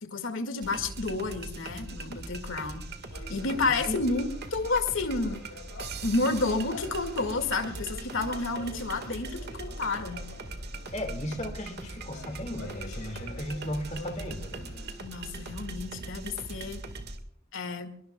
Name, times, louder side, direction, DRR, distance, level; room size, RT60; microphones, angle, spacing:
voice 1, 0.0-2.8 3.3-5.4 6.0-10.2 15.0-16.8 17.5-17.9, left 3 dB, 60° left, 7 dB, 2.1 m, -30 dB
sound 1, 0.6-17.2, right 2 dB, 50° right, 1.7 m, -40 dB
sound 2, 3.1-15.7, left 3 dB, 80° left, 2.5 m, -48 dB
voice 2, 10.9-14.7, left 1 dB, 30° left, 5 dB, 2.1 m, -36 dB
26.0 x 22.0 x 2.3 m, 0.70 s
head